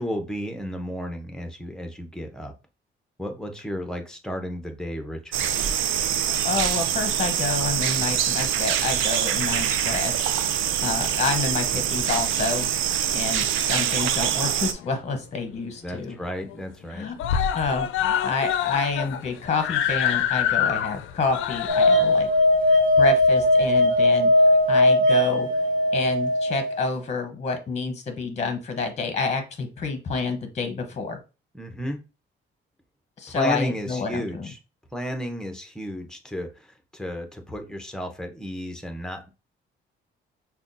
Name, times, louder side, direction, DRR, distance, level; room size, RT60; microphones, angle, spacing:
voice 1, 0.0-2.5 3.2-5.7 15.8-17.1 31.5-32.0 33.3-34.6 34.9-39.3, equal, 5° left, 5 dB, 0.8 m, -33 dB
sound 1, 5.3-14.7, right 10 dB, 80° right, 0.4 m, -24 dB
voice 2, 6.4-10.3 10.8-12.7 13.1-16.2 16.9-17.1 17.5-22.3 22.7-25.5 25.9-31.2 33.2-34.5, left 4 dB, 35° left, 6 dB, 0.9 m, -28 dB
Screaming, 14.3-15.2 15.6-15.7 16.0-16.1 16.4-16.9 17.2-24.0 24.8-24.9, left 9 dB, 80° left, 0.4 m, -27 dB
sound 2, 21.7-26.8, left 1 dB, 40° right, 1.0 m, -19 dB
5.6 x 2.3 x 2.6 m, 0.30 s
cardioid pair, 90°, 20 cm